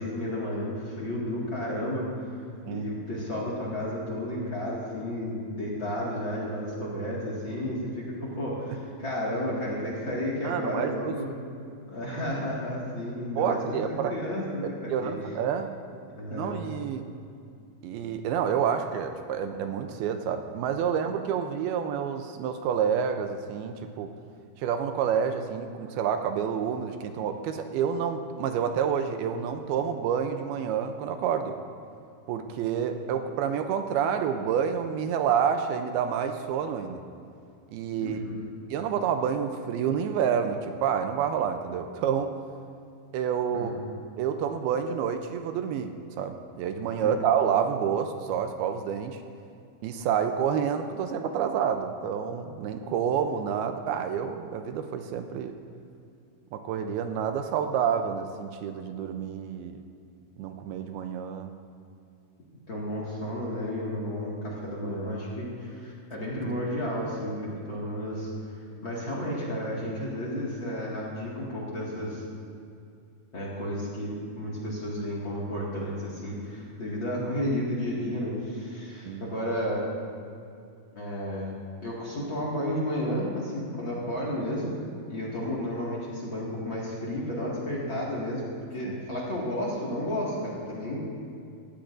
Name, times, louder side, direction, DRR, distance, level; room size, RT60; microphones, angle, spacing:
voice 1, 0.0-2.3 2.7-11.3 11.9-15.1 16.2-16.6 38.0-38.4 43.5-43.7 47.0-47.3 62.7-72.2 73.3-79.8 80.9-81.5 81.8-84.7 85.1-88.4 88.7-91.0, equal, 40° left, -6 dB, 2.1 m, -32 dB
voice 2, 10.4-11.1 13.4-14.1 14.9-15.8 16.3-17.1 17.8-24.1 24.6-31.6 32.3-37.0 37.7-38.2 38.7-42.3 43.1-43.7 44.2-45.9 46.2-49.2 49.8-55.5 56.5-59.8 60.4-61.5 79.1-79.2 88.9-89.0, right 8 dB, 80° right, 6 dB, 2.5 m, -28 dB
18.0 x 15.5 x 2.6 m, 2.4 s
omnidirectional pair, 4.6 m